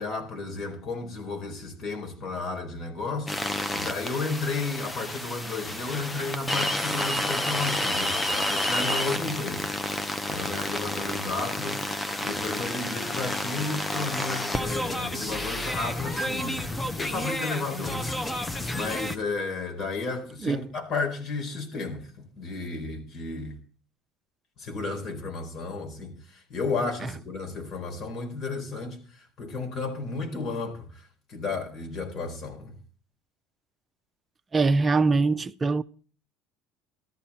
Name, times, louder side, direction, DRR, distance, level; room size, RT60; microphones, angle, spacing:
voice 1, 0.0-3.3 3.7-9.7 10.3-11.8 12.2-16.6 16.9-18.1 18.7-23.6 24.6-32.7, left 3 dB, 50° left, 4.5 m, -33 dB
sound 1, 3.3-19.2, left 1 dB, 10° left, 1.0 m, -30 dB
voice 2, 34.5-35.8, right 3 dB, 20° right, 0.6 m, -22 dB
13.5 x 13.5 x 4.3 m
supercardioid pair, 105°, 0 cm